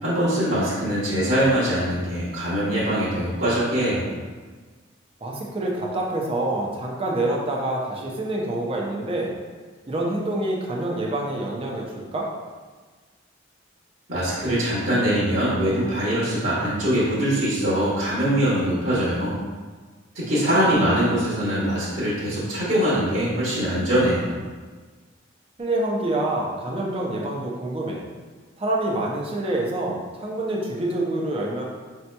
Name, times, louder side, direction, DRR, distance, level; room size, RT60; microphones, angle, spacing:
voice 1, 0.0-4.1 14.1-19.3 20.1-24.3, equal, 55° right, -10 dB, 1.1 m, -22 dB
voice 2, 5.2-9.3 9.9-12.3 20.3-21.0 25.6-28.0 28.6-31.6, right 1 dB, 30° right, -2 dB, 0.5 m, -27 dB
5.3 x 2.8 x 2.2 m, 1.4 s
head